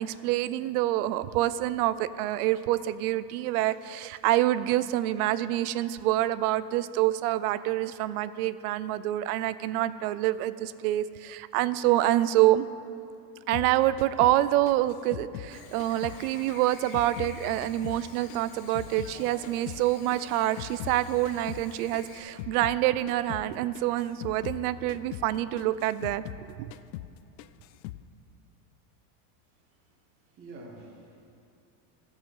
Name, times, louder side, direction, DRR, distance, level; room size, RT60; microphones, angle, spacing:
voice 1, 0.0-12.7 13.5-26.2 26.6-26.7, right 14 dB, 65° right, 15 dB, 0.5 m, -26 dB
sound 1, 13.5-16.2 16.5-19.2 19.4-22.8 23.1-23.5 23.7-26.5 26.7-27.1 27.4-28.0, left 13 dB, 85° left, 0.6 m, -41 dB
Chirp tweet / Buzz, 15.5-22.2, left 4 dB, 20° left, 0.3 m, -49 dB
voice 2, 29.5-31.3, right 2 dB, 25° right, -2 dB, 1.3 m, -49 dB
15.5 x 5.8 x 5.7 m, 2.5 s
cardioid pair, 175°, 48 cm